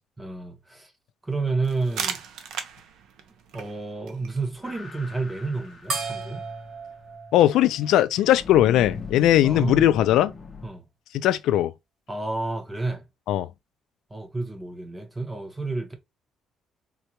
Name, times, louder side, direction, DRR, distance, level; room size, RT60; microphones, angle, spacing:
voice 1, 0.2-0.9 1.2-2.2 3.5-6.4 9.4-9.8 10.6-10.9 12.1-13.0 14.1-15.9, right 3 dB, 15° right, 0.8 m, -30 dB
sound 1, 1.6-7.2, right 7 dB, 75° right, 0.6 m, -39 dB
sound 2, 4.6-6.7 8.3-10.7, left 4 dB, 30° left, 0.7 m, -40 dB
sound 3, 5.9-8.7, right 4 dB, 55° right, 1.7 m, -35 dB
voice 2, 7.3-10.3 11.1-11.7 13.3-13.5, left 12 dB, 80° left, 0.3 m, -19 dB
3.9 x 2.2 x 2.8 m
cardioid pair, 140°, 0 cm